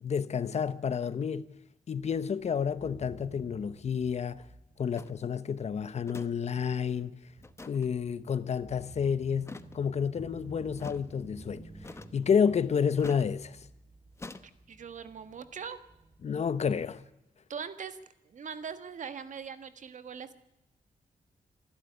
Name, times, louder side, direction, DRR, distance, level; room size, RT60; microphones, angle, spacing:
voice 1, 0.0-1.5 1.9-4.4 4.8-7.1 7.6-11.6 12.1-13.6 16.2-17.0, left 7 dB, 50° left, 0.9 m, -30 dB
sound 1, 2.0-17.0, right 2 dB, 45° right, 6.2 m, -54 dB
sound 2, 5.0-5.1 6.1-6.3 6.6-6.7 7.4-7.9 9.4-9.8 10.8-11.0 11.8-12.3 13.0-13.3 14.2-14.4, left 3 dB, 20° left, 1.0 m, -45 dB
voice 2, 14.4-15.8 17.5-18.0 18.2-20.3, right 6 dB, 60° right, 1.6 m, -41 dB
26.0 x 12.0 x 9.9 m
wide cardioid pair, 160°, 14 cm